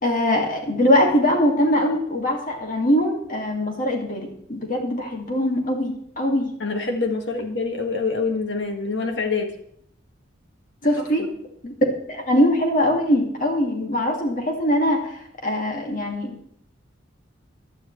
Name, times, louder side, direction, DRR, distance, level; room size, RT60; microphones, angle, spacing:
voice 1, 0.0-6.5 10.8-11.3 11.6-11.7 12.1-16.3, left 1 dB, 45° left, 1 dB, 2.3 m, -22 dB
voice 2, 6.6-9.5 11.0-11.1, left 4 dB, 65° left, 3 dB, 2.0 m, -25 dB
17.0 x 11.5 x 3.3 m, 0.70 s
head